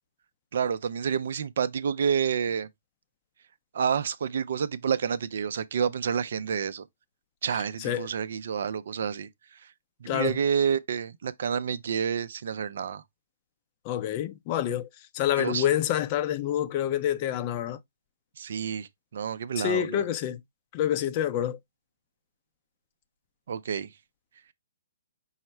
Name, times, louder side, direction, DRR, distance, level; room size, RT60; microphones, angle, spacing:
voice 1, 0.5-2.7 3.7-6.9 7.4-9.6 10.0-13.0 15.4-15.7 18.4-20.0 23.5-23.9, right 7 dB, 65° right, 0.5 m, -29 dB
voice 2, 13.9-14.9 15.1-17.8 19.6-20.4 20.7-21.6, left 11 dB, 35° left, 0.6 m, -27 dB
5.6 x 2.1 x 4.4 m
hypercardioid pair, 140°, 0 cm